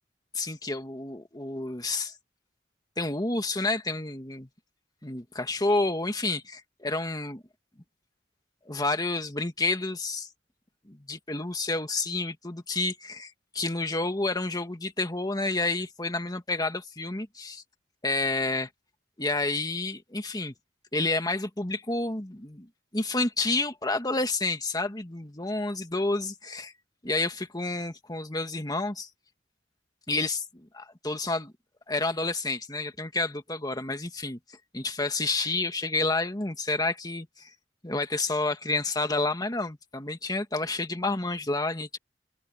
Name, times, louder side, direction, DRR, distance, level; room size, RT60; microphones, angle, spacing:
voice 1, 0.3-2.1 3.0-4.5 5.0-7.4 8.7-10.3 10.9-17.6 18.0-18.7 19.2-20.5 20.9-22.7 22.9-26.7 27.0-29.1 30.1-31.5 31.9-34.4 34.7-37.5 37.8-42.0, left 2 dB, 20° left, 1.9 m, -29 dB
open air
head